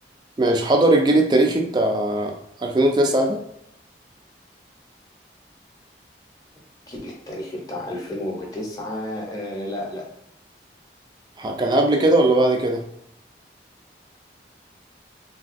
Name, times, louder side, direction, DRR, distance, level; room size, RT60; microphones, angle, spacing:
voice 1, 0.4-2.3 2.6-3.4 11.4-12.8, right 1 dB, 25° right, 3 dB, 0.3 m, -19 dB
voice 2, 6.9-10.0, left 1 dB, 20° left, -2 dB, 0.7 m, -31 dB
3.4 x 2.3 x 2.5 m, 0.74 s
head